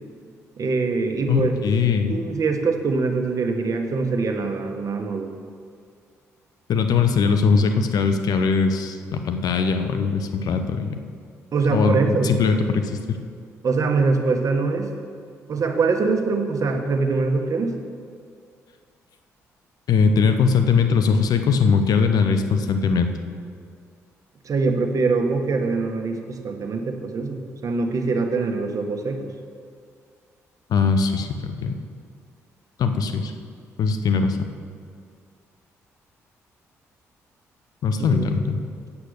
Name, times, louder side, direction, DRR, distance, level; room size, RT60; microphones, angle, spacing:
voice 1, 0.6-1.5 2.1-5.3 11.5-12.3 13.6-14.9 15.5-17.7 24.4-29.3 38.1-38.3, right 4 dB, 55° right, 5 dB, 1.3 m, -23 dB
voice 2, 1.3-2.1 6.7-10.9 11.7-13.2 19.9-23.1 30.7-31.7 32.8-33.3 33.8-34.4 37.8-38.6, left 5 dB, 65° left, 8 dB, 0.9 m, -20 dB
8.3 x 8.2 x 6.5 m, 2.3 s
hypercardioid pair, 50°, 7 cm